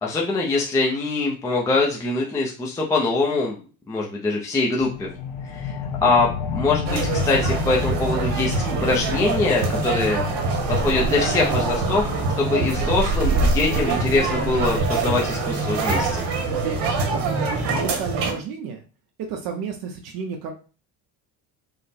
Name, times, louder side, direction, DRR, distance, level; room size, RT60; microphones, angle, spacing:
voice 1, 0.0-3.6 3.9-5.1 5.4-10.2 10.7-12.1 12.4-16.2, left 3 dB, 10° left, -3 dB, 0.3 m, -23 dB
sound 1, 4.8-15.9, left 5 dB, 60° left, 1.1 m, -32 dB
sound 2, 6.9-18.3, right 3 dB, 90° right, 1.2 m, -24 dB
voice 2, 17.7-18.8 19.2-20.5, right 6 dB, 65° right, 3 dB, 0.8 m, -32 dB
5.2 x 2.0 x 4.2 m, 0.35 s
cardioid pair, 180°, 39 cm